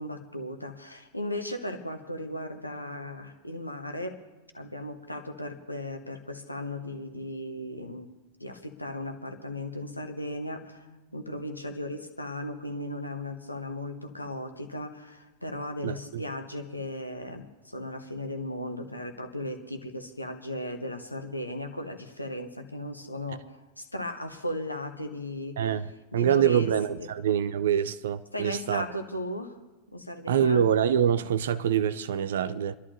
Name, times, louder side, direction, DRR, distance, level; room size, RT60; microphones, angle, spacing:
voice 1, 0.0-4.2 4.5-8.1 8.4-25.6 26.1-26.7 27.0-27.1 28.3-29.6 29.9-30.7, left 1 dB, 85° left, 1.2 m, -36 dB
voice 2, 15.8-16.2 25.6-25.9 26.1-28.8 30.3-32.8, right 9 dB, 60° right, 0.4 m, -25 dB
30.0 x 11.0 x 2.7 m
figure-of-eight pair, 90°, 0 cm